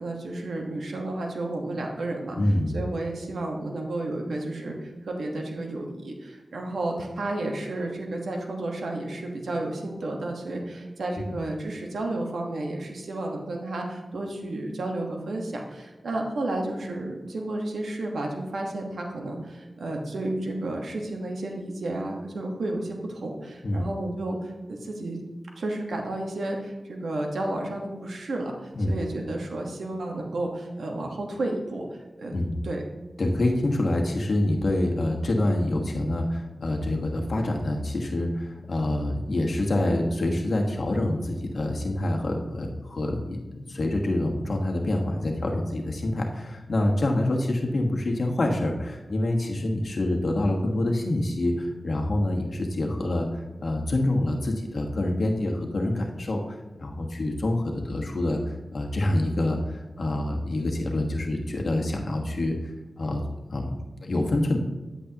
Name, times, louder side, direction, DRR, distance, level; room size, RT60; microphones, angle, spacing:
voice 1, 0.0-25.2 25.6-31.9 32.2-32.3 32.6-32.8, right 2 dB, 90° right, 1 dB, 1.3 m, -32 dB
voice 2, 2.4-2.8 23.6-23.8 28.7-28.9 32.3-32.7 33.2-58.4 58.7-62.7 63.0-63.2 63.5-64.6, left 1 dB, 65° left, 2 dB, 1.3 m, -26 dB
9.9 x 8.5 x 2.9 m, 1.2 s
cardioid pair, 55°, 0 cm